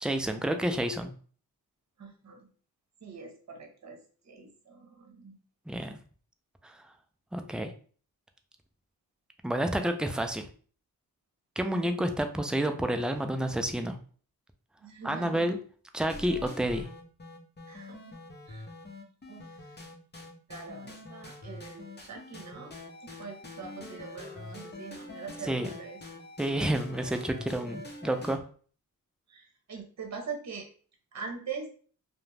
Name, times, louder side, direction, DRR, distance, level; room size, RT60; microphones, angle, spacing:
voice 1, 0.0-1.1 5.7-6.0 6.6-6.8 7.3-7.7 9.4-10.5 11.6-14.0 15.0-15.6 15.9-16.9 25.5-25.7 26.4-28.4, right 1 dB, ahead, 6 dB, 0.4 m, -29 dB
voice 2, 2.0-2.5 3.0-5.4 11.7-12.1 14.8-15.6 17.7-18.2 18.5-18.7 19.3-19.8 20.5-26.0 29.3-30.7 31.1-31.7, right 5 dB, 45° right, 3 dB, 0.9 m, -43 dB
sound 1, 16.0-28.4, left 2 dB, 25° left, 0.7 m, -44 dB
2.4 x 2.1 x 3.2 m, 0.43 s
cardioid pair, 45°, 39 cm